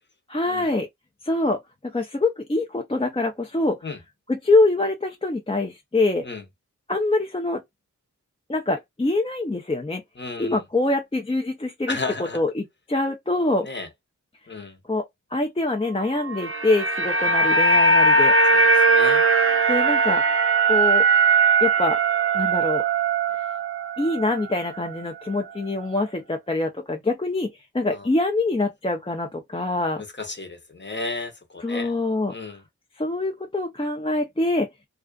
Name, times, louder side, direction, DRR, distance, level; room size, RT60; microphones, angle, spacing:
voice 1, 0.3-0.9 1.2-1.6 1.8-3.8 4.3-6.2 6.9-7.6 8.5-10.0 10.4-12.0 12.3-13.7 14.9-15.0 15.3-18.3 19.7-20.2 20.7-21.0 21.6-22.0 22.3-22.8 24.0-27.5 27.7-30.0 31.6-32.3 33.0-34.7, left 2 dB, 15° left, 0.5 m, -24 dB
voice 2, 10.2-10.6 11.9-12.4 13.6-13.9 14.5-14.8 18.5-19.2 27.9-28.1 30.2-31.9 32.3-32.6, left 3 dB, 35° left, 0.9 m, -33 dB
sound 1, 16.2-24.5 24.8-24.9, right 3 dB, 40° right, 0.5 m, -19 dB
2.4 x 2.4 x 2.2 m
wide cardioid pair, 60°, 32 cm